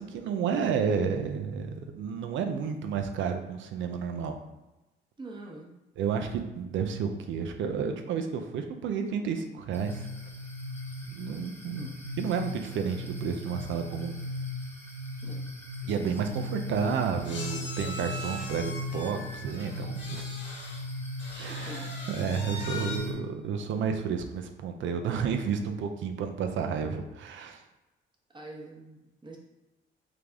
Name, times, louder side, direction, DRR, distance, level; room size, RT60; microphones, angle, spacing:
voice 1, 0.0-4.3 6.0-10.1 11.0-11.9 12.2-14.1 15.9-20.2 21.4-27.6, right 6 dB, 75° right, 6 dB, 0.6 m, -31 dB
voice 2, 5.2-5.8 11.7-11.9 15.2-15.4 21.3-21.9 22.7-22.9 28.3-29.4, right 2 dB, 25° right, -1 dB, 1.0 m, -45 dB
sound 1, 9.7-23.1, left 1 dB, 10° left, 1.1 m, -38 dB
sound 2, 15.8-15.9 16.1-16.3 17.2-20.8 21.2-23.0, left 1 dB, 65° left, 1.2 m, -41 dB
3.8 x 3.4 x 3.5 m, 1.0 s
cardioid pair, 90°, 20 cm